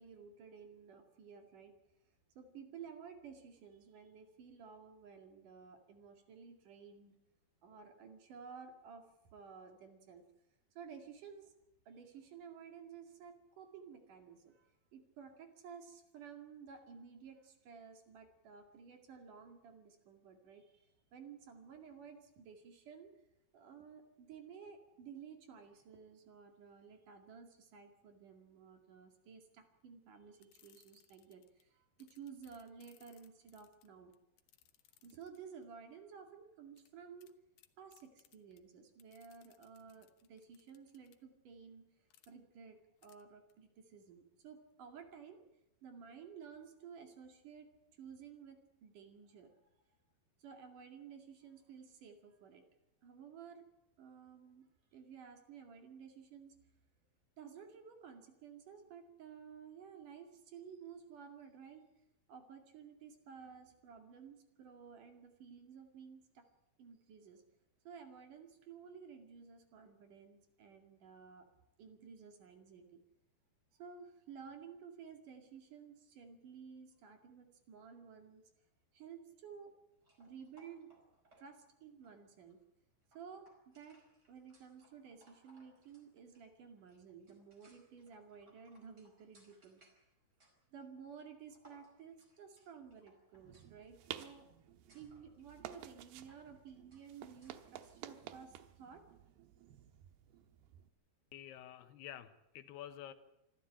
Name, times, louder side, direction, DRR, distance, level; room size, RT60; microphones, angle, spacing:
voice 1, 0.0-1.7 2.4-7.1 7.6-10.2 10.8-11.5 11.9-23.1 23.5-34.1 35.0-37.3 37.8-41.9 42.3-45.5 45.8-47.7 48.0-49.6 50.4-52.6 53.0-53.6 54.0-56.6 57.4-61.8 62.3-66.5 66.8-67.4 67.9-71.5 71.8-73.0 73.7-78.5 78.9-79.7 80.2-80.9 81.4-82.6 83.1-84.0 84.3-89.8 90.7-94.5 94.9-99.0, right 6 dB, 55° right, 5 dB, 3.6 m, -54 dB
sound 1, 30.4-31.6 32.0-35.6 36.8-36.9 37.2-37.3 37.6-38.6 39.0-41.2 42.1-42.3 43.0-43.2 43.5-43.6, left 13 dB, 70° left, 2.7 m, -68 dB
sound 2, 80.0-98.1, right 1 dB, 25° right, 5.3 m, -70 dB
sound 3, 93.3-100.9, right 12 dB, 85° right, 3.1 m, -53 dB
voice 2, 101.3-103.1, left 11 dB, 85° left, 10 dB, 3.2 m, -49 dB
25.5 x 13.5 x 8.8 m, 0.86 s
omnidirectional pair, 4.6 m